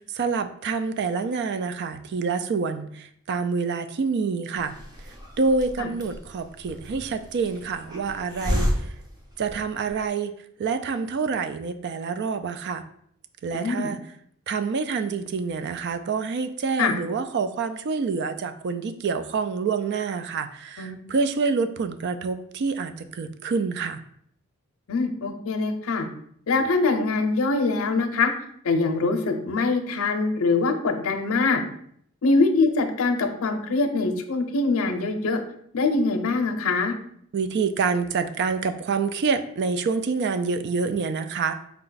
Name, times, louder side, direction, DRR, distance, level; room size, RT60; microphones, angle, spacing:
voice 1, 0.0-4.8 5.4-8.9 9.4-10.3 10.6-12.8 13.4-14.0 14.5-24.0 37.3-41.5, right 5 dB, 55° right, 10 dB, 0.3 m, -27 dB
Hiss, 4.6-10.0, equal, 20° right, 0.9 m, -32 dB
voice 2, 13.5-13.9 16.8-16.9 20.8-21.0 24.9-26.1 26.5-28.3 28.6-31.6 32.2-35.4 35.7-36.9, left 3 dB, 75° left, 6 dB, 0.5 m, -23 dB
4.7 x 2.2 x 3.9 m, 0.66 s
head